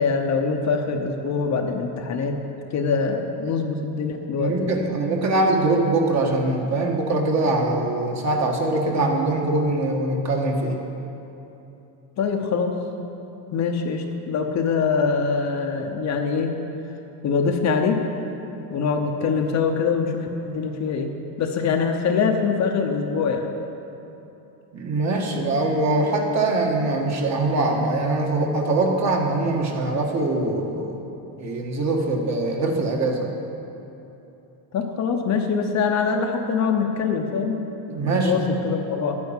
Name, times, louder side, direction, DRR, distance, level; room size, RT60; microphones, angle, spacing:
voice 1, 0.0-2.4 2.7-4.8 12.2-12.8 13.5-16.5 17.2-18.0 18.7-21.1 21.4-23.5 34.7-37.6 38.0-39.2, left 5 dB, 40° left, 3 dB, 0.9 m, -23 dB
voice 2, 4.4-10.8 24.7-31.0 31.4-33.3 37.9-38.4, right 2 dB, 35° right, 1 dB, 1.6 m, -23 dB
11.5 x 9.6 x 7.3 m, 3.0 s
cardioid pair, 160°, 45 cm